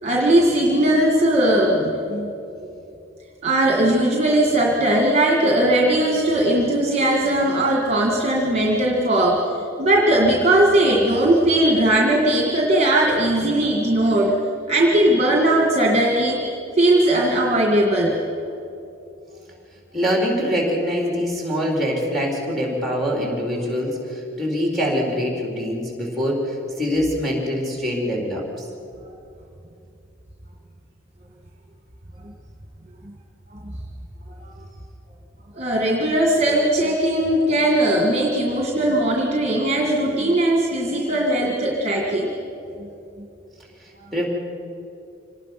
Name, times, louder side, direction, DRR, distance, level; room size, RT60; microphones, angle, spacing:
voice 1, 0.0-2.3 3.4-9.4 9.8-14.4 14.7-16.4 16.8-18.2 34.4-34.5 35.5-42.3, right 1 dB, 30° right, 0 dB, 2.0 m, -19 dB
voice 2, 19.9-28.5 44.1-44.3, equal, ahead, -1 dB, 4.0 m, -24 dB
26.0 x 18.5 x 6.1 m, 2.7 s
head